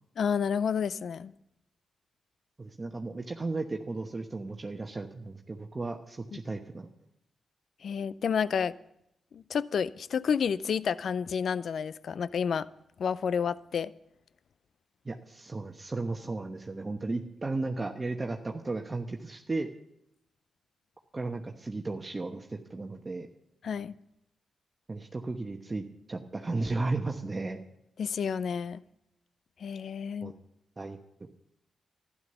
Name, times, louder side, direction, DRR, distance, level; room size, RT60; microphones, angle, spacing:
voice 1, 0.2-1.3 7.8-8.7 9.3-12.7 13.0-13.9 23.6-23.9 28.0-28.8 29.6-30.3, left 7 dB, 70° left, 0.5 m, -30 dB
voice 2, 2.6-6.9 15.0-19.7 21.1-23.3 24.9-27.6 30.2-30.3 30.8-31.0, right 3 dB, 35° right, 1.1 m, -35 dB
12.5 x 11.0 x 6.9 m
supercardioid pair, 50°, 0 cm